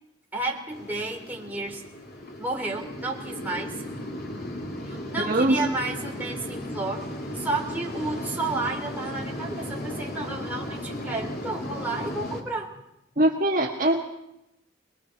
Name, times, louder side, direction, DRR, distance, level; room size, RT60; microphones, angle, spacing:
voice 1, 0.3-1.8 2.4-3.8 4.9-7.1 7.3-12.7, right 2 dB, 10° right, -2 dB, 3.5 m, -32 dB
sound 1, 0.7-12.4, left 1 dB, 55° left, 2.9 m, -35 dB
voice 2, 5.2-5.6 13.2-14.0, right 1 dB, 45° right, 0 dB, 1.7 m, -22 dB
25.5 x 20.5 x 5.9 m, 0.86 s
head